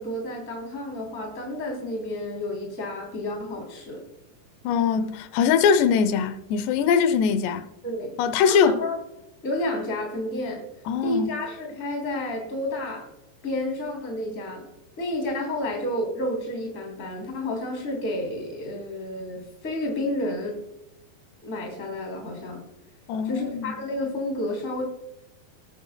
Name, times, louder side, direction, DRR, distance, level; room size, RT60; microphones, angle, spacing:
voice 1, 0.0-4.0 7.8-8.9 9.4-10.6 11.0-13.1 13.4-14.7 15.0-20.6 21.4-22.7 23.2-24.8, left 1 dB, 20° left, 3.0 m, -30 dB
voice 2, 4.6-7.7 8.2-8.8 10.9-11.3 23.1-23.8, left 6 dB, 80° left, 2.8 m, -22 dB
19.5 x 10.0 x 2.2 m
omnidirectional pair, 5.0 m